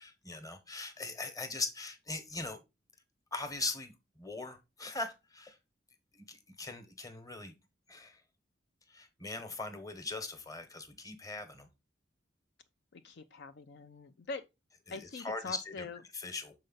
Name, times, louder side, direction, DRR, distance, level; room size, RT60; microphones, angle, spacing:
voice 1, 0.0-2.6 3.3-5.6 6.1-7.5 7.9-8.2 8.9-11.7 14.9-15.8 16.1-16.5, left 3 dB, 20° left, 1.0 m, -40 dB
voice 2, 12.9-14.4 14.9-16.0, left 4 dB, 60° left, 0.4 m, -43 dB
6.6 x 4.2 x 3.9 m
head